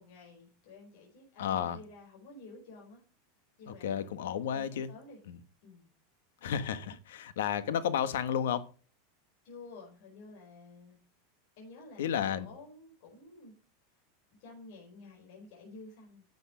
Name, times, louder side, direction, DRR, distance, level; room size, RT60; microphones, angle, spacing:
voice 1, 0.0-3.0 3.6-5.2 5.6-5.9 6.8-7.0 9.4-11.0 11.6-13.5 14.4-16.2, left 3 dB, 60° left, 4.9 m, -51 dB
voice 2, 1.4-1.8 3.7-4.9 5.3-5.4 6.4-8.7 12.0-12.5, left 9 dB, 85° left, 1.3 m, -32 dB
10.5 x 8.1 x 5.0 m
supercardioid pair, 145°, 0 cm